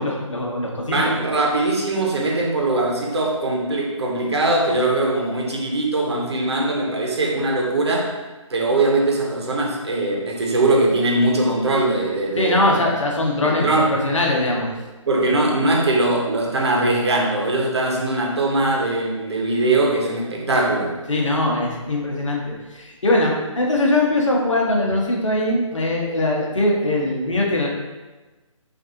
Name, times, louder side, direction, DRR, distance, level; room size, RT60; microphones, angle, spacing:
voice 1, 0.0-1.0 12.4-14.7 21.1-27.7, left 2 dB, 65° left, -1 dB, 1.0 m, -21 dB
voice 2, 0.8-8.1 8.5-12.8 13.4-13.9 15.1-20.9, right 2 dB, 55° right, -1 dB, 0.9 m, -21 dB
5.8 x 2.6 x 2.7 m, 1.2 s
figure-of-eight pair, 150°, 17 cm